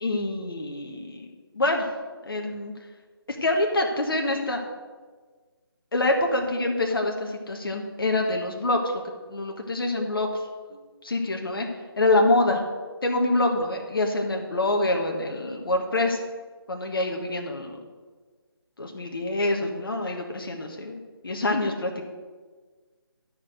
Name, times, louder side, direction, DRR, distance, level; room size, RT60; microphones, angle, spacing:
voice 1, 0.0-1.3 1.5-1.9 2.2-2.7 3.4-4.6 5.9-9.0 9.3-11.7 12.0-12.6 13.0-16.2 16.7-17.8 18.8-21.0 21.2-22.1, left 2 dB, 60° left, 2 dB, 1.5 m, -26 dB
12.5 x 4.9 x 6.4 m, 1.4 s
figure-of-eight pair, 155°, 13 cm